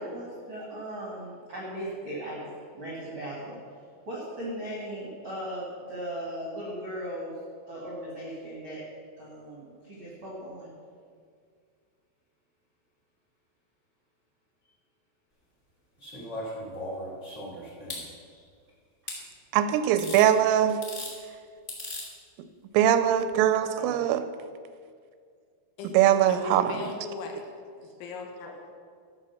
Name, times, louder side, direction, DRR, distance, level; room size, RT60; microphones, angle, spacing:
voice 1, 0.0-3.6 4.0-7.4 7.7-8.8 9.2-10.7 18.3-18.5 23.8-24.1, right 1 dB, 55° right, -5 dB, 1.3 m, -38 dB
sound 1, 16.0-18.0 19.1-19.2 20.0-20.3 20.7-21.1 21.7-22.1 23.3-23.4, left 1 dB, 25° left, 1.7 m, -37 dB
voice 2, 19.5-20.8 22.7-24.2 25.9-26.7, right 11 dB, 85° right, 11 dB, 3.0 m, -22 dB
voice 3, 26.3-27.5 27.8-28.5, left 3 dB, 75° left, 1 dB, 3.5 m, -38 dB
13.5 x 6.0 x 7.0 m, 2.1 s
omnidirectional pair, 5.8 m